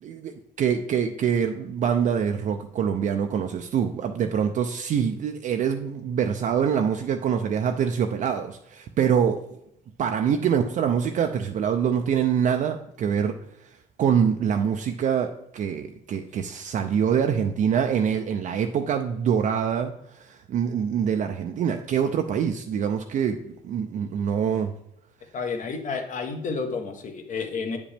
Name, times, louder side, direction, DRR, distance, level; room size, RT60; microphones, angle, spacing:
voice 1, 0.0-9.6 10.0-13.7 14.0-23.4 23.6-24.8, right 7 dB, 50° right, 5 dB, 0.5 m, -25 dB
voice 2, 25.3-27.8, left 4 dB, 50° left, 4 dB, 1.2 m, -30 dB
8.7 x 5.1 x 3.4 m, 0.79 s
cardioid pair, 110°, 17 cm